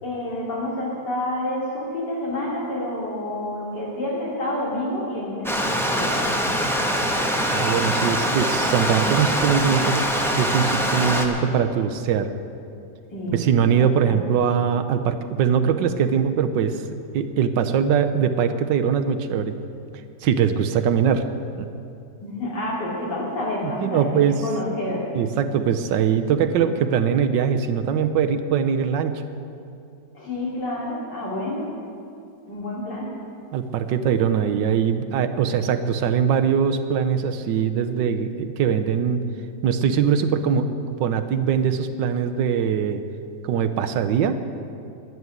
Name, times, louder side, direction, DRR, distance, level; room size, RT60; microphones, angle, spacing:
voice 1, 0.0-6.2 13.1-14.2 22.2-25.1 30.1-31.7 32.5-33.1, left 1 dB, 70° left, -4 dB, 3.5 m, -29 dB
Stream, 5.4-11.2, equal, ahead, 0.8 m, -23 dB
voice 2, 7.5-10.1 10.4-12.3 13.3-16.8 17.1-19.6 20.2-21.2 21.6-21.7 23.6-24.4 25.1-29.2 33.5-39.2 39.6-40.7 41.0-43.0 43.4-44.4, right 7 dB, 85° right, 8 dB, 1.4 m, -22 dB
11.0 x 11.0 x 7.9 m, 2.6 s
omnidirectional pair, 1.9 m